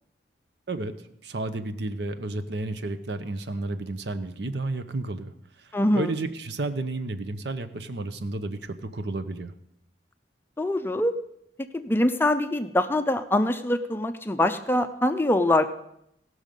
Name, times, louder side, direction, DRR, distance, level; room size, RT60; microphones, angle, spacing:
voice 1, 1.2-5.3 5.6-9.5, right 2 dB, 65° right, 10 dB, 0.7 m, -32 dB
voice 2, 5.7-6.1 10.6-11.1 11.6-15.7, left 1 dB, 10° left, 9 dB, 0.4 m, -24 dB
17.0 x 6.3 x 5.2 m, 0.76 s
head